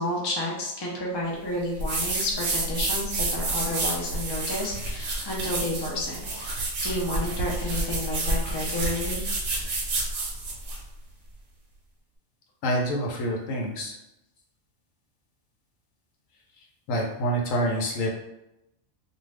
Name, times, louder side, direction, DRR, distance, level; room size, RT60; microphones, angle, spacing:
voice 1, 0.0-9.3, left 1 dB, 35° left, -3 dB, 0.4 m, -31 dB
sound 1, 1.8-10.8, right 2 dB, 60° right, 0.9 m, -29 dB
voice 2, 12.6-13.9 16.9-18.1, equal, 75° left, -1 dB, 1.0 m, -27 dB
2.5 x 2.4 x 3.3 m, 0.88 s
omnidirectional pair, 1.4 m